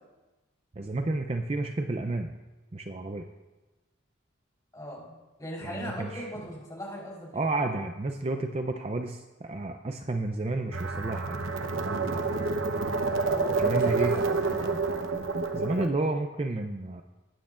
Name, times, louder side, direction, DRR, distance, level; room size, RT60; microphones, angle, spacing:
voice 1, 0.8-2.3 2.7-3.2 5.6-6.3 7.3-11.4 11.9-12.3 13.6-14.1 15.5-17.0, right 2 dB, 30° right, 5 dB, 0.4 m, -31 dB
voice 2, 4.7-7.6 13.3-15.0, equal, 15° left, -5 dB, 3.9 m, -40 dB
sound 1, 10.7-15.9, right 3 dB, 85° right, 0.9 m, -28 dB
20.0 x 9.3 x 2.5 m, 1.1 s
head